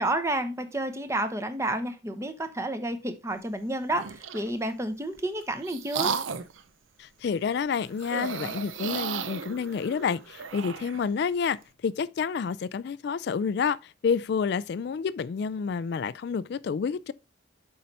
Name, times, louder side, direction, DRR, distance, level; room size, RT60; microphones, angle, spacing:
voice 1, 0.0-6.1, right 1 dB, 15° right, 0.8 m, -30 dB
sound 1, 3.9-4.5 5.2-6.6 8.0-11.0, right 6 dB, 85° right, 0.7 m, -34 dB
voice 2, 7.0-11.6 11.8-17.1, left 6 dB, 55° left, 0.3 m, -29 dB
7.6 x 5.5 x 4.1 m
head